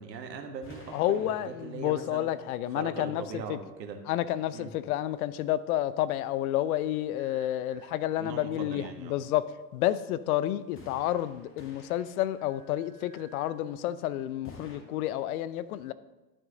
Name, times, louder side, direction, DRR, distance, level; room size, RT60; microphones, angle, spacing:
voice 1, 0.0-1.3 1.6-2.3 2.7-4.0 4.5-4.7 8.2-9.2, right 5 dB, 80° right, 1.5 m, -40 dB
sound 1, 0.6-2.3 10.8-13.0 14.4-14.8, left 3 dB, 25° left, 2.1 m, -52 dB
voice 2, 0.9-3.6 4.1-15.9, left 13 dB, 60° left, 0.6 m, -30 dB
sound 2, 7.2-8.7 10.6-11.4 11.8-13.6, right 5 dB, 20° right, 2.5 m, -59 dB
11.5 x 6.2 x 3.8 m
hypercardioid pair, 105°, 49 cm